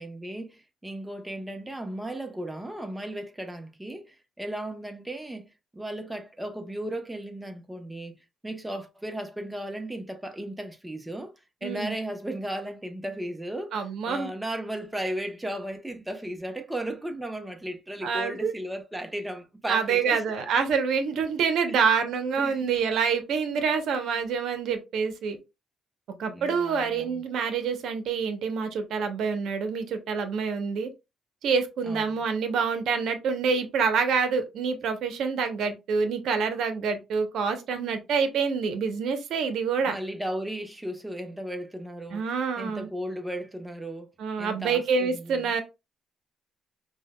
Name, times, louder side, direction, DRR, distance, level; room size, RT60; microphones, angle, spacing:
voice 1, 0.0-8.2 8.4-11.3 11.6-20.2 21.6-21.8 22.4-22.7 26.3-27.2 31.8-32.2 39.8-42.3 42.6-44.1 44.4-45.5, right 1 dB, 10° right, 0.8 m, -35 dB
voice 2, 11.6-11.9 13.7-14.3 18.0-18.5 19.7-25.4 26.2-30.9 31.4-40.0 42.1-42.9 44.2-45.6, right 5 dB, 75° right, 0.7 m, -27 dB
5.4 x 2.2 x 2.2 m
cardioid pair, 90°, 0 cm